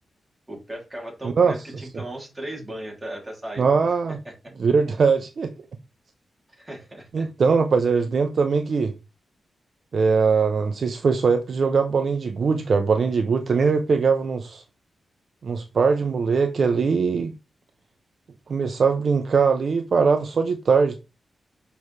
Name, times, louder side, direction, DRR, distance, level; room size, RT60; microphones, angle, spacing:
voice 1, 0.5-3.9 4.2-4.3 6.5-7.3, right 1 dB, 10° right, 2.8 m, -37 dB
voice 2, 1.2-1.5 3.6-4.2 4.6-5.5 7.1-8.9 9.9-14.6 15.4-17.3 18.5-21.0, right 5 dB, 50° right, 0.6 m, -21 dB
6.9 x 5.4 x 3.2 m
wide cardioid pair, 155°, 0 cm